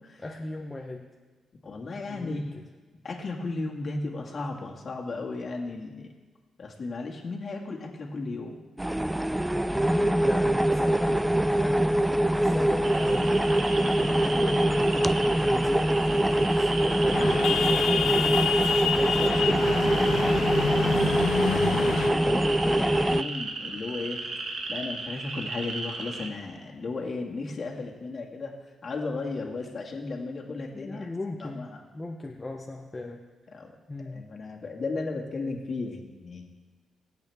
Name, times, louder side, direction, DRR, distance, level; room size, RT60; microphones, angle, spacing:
voice 1, 0.2-1.1 2.1-2.6 9.9-20.2 30.5-31.7 31.9-33.2 33.9-34.3, left 2 dB, 20° left, 0 dB, 1.0 m, -37 dB
voice 2, 1.6-2.4 3.0-6.1 6.6-8.6 9.8-9.9 20.8-24.2 24.7-28.5 28.8-31.1 31.4-31.8 33.5-33.7 34.1-36.5, left 3 dB, 45° left, -1 dB, 2.1 m, -35 dB
sound 1, 8.8-23.2, right 1 dB, 10° right, 0.3 m, -24 dB
sound 2, 12.8-26.3, right 3 dB, 60° right, 1.6 m, -36 dB
sound 3, 17.1-22.1, left 8 dB, 90° left, 0.7 m, -28 dB
24.0 x 8.2 x 3.6 m, 1.3 s
cardioid pair, 90°, 0 cm